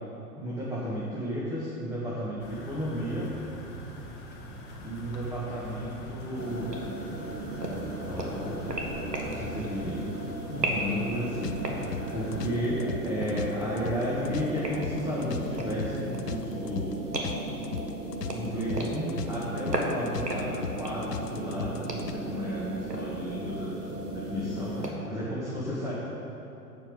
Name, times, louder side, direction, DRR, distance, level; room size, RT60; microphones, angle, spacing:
voice 1, 0.3-3.3 4.8-6.8 8.0-8.7 9.2-10.0 10.5-16.9 18.3-25.9, equal, 5° right, -8 dB, 1.6 m, -33 dB
sound 1, 2.4-12.5, left 1 dB, 20° left, 1.3 m, -43 dB
sound 2, 6.3-24.9, right 1 dB, 85° right, 1.7 m, -35 dB
sound 3, 11.4-22.1, left 7 dB, 85° left, 0.7 m, -37 dB
11.0 x 8.4 x 5.1 m, 2.9 s
figure-of-eight pair, 115°, 47 cm